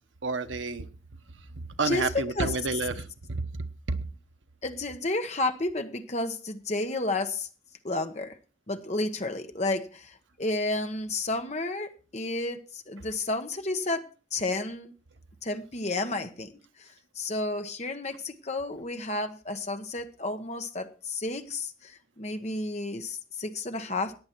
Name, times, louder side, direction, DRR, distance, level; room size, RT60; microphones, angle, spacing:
voice 1, 0.2-0.8 1.8-3.4 3.9-4.0, right 3 dB, 85° right, 9 dB, 1.0 m, -29 dB
voice 2, 4.6-7.5 7.8-8.4 8.7-14.9 15.4-16.5 16.8-16.9 17.1-24.2, left 2 dB, 35° left, 7 dB, 1.2 m, -31 dB
14.5 x 9.6 x 4.6 m, 0.36 s
head